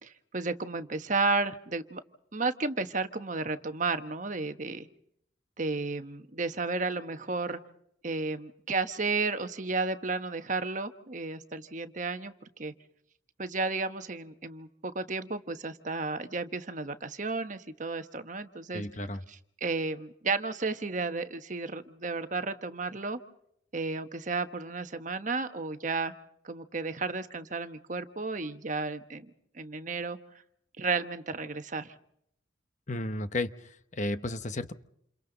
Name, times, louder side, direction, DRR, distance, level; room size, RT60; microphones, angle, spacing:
voice 1, 0.0-2.0 2.3-4.9 5.6-7.6 8.0-12.3 12.6-12.7 13.4-18.9 19.6-23.2 23.7-26.1 26.4-30.2 30.8-31.9, right 3 dB, 40° right, 8 dB, 1.2 m, -33 dB
voice 2, 18.7-19.2 32.9-34.7, left 1 dB, 40° left, 10 dB, 0.9 m, -33 dB
29.0 x 28.5 x 4.0 m, 0.73 s
head